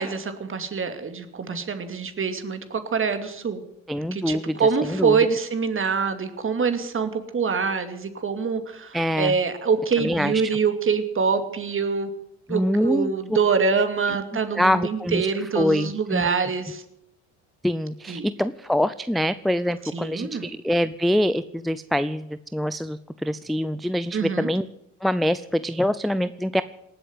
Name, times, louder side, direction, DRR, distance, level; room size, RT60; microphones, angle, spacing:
voice 1, 0.0-3.6 4.1-12.1 12.5-16.8 18.1-18.3 19.9-20.5 24.1-24.5, right 5 dB, 35° right, 9 dB, 2.6 m, -25 dB
voice 2, 3.9-5.2 8.9-9.3 10.0-10.6 12.5-13.1 14.1-14.2 14.6-15.3 15.6-16.3 17.6-24.6 25.0-26.6, equal, ahead, 13 dB, 0.5 m, -25 dB
18.5 x 8.1 x 9.6 m, 0.81 s
supercardioid pair, 75°, 37 cm